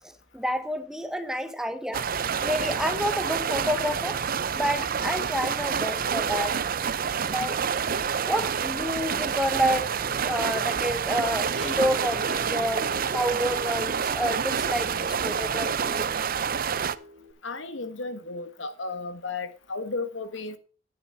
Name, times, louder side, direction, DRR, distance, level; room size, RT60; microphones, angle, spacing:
voice 1, 0.0-2.1 2.4-4.2 4.5-6.6 7.3-7.6 8.2-12.9 13.1-16.1, equal, 5° right, 1.1 m, -29 dB
sound 1, 1.9-17.0, right 7 dB, 50° right, 0.6 m, -28 dB
sound 2, 11.5-17.3, equal, 80° right, 3.0 m, -42 dB
voice 2, 17.4-20.6, left 3 dB, 80° left, 1.5 m, -34 dB
10.0 x 10.0 x 4.4 m
head